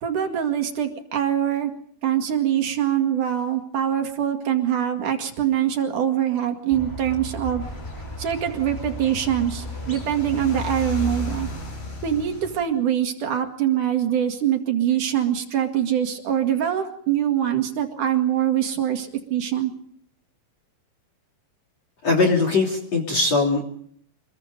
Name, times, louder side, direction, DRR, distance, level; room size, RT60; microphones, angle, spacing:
voice 1, 0.0-1.7 2.0-7.6 8.2-11.5 12.0-19.7, right 10 dB, 50° right, 5 dB, 2.8 m, -23 dB
Squeak, 6.7-11.7, equal, 5° left, 7.0 m, -37 dB
sound 1, 7.6-12.6, left 3 dB, 55° left, 9.4 m, -34 dB
voice 2, 22.0-23.6, left 3 dB, 35° left, 3 dB, 3.6 m, -20 dB
27.0 x 21.5 x 5.3 m, 0.63 s
omnidirectional pair, 5.7 m